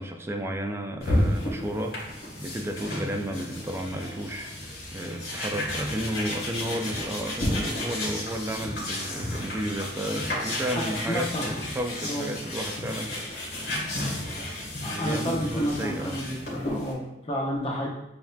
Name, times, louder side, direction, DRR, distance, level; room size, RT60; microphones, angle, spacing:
voice 1, 0.0-2.0 2.4-13.3 14.3-14.5 14.8-16.3, right 1 dB, 15° right, 5 dB, 0.3 m, -33 dB
sound 1, 1.0-16.9, left 1 dB, 65° left, 1.5 m, -32 dB
voice 2, 10.7-11.4 12.1-12.3 14.8-17.9, equal, 35° left, -3 dB, 0.8 m, -30 dB
7.1 x 2.7 x 2.2 m, 0.90 s
head